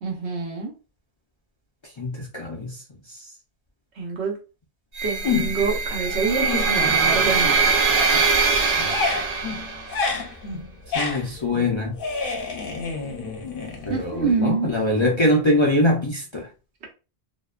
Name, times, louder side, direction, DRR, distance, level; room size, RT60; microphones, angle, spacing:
voice 1, 0.0-0.7 4.0-4.3 5.0-7.7 13.9-14.8, right 4 dB, 90° right, 1.1 m, -26 dB
voice 2, 2.0-2.8 8.8-8.9 10.9-12.0 13.8-16.5, left 1 dB, 45° left, 0.4 m, -23 dB
sound 1, 5.0-10.0, right 4 dB, 50° right, 0.5 m, -22 dB
sound 2, 5.2-5.8 6.2-7.5 7.8-14.3, left 4 dB, 60° left, 0.8 m, -29 dB
2.7 x 2.1 x 2.3 m
omnidirectional pair, 1.1 m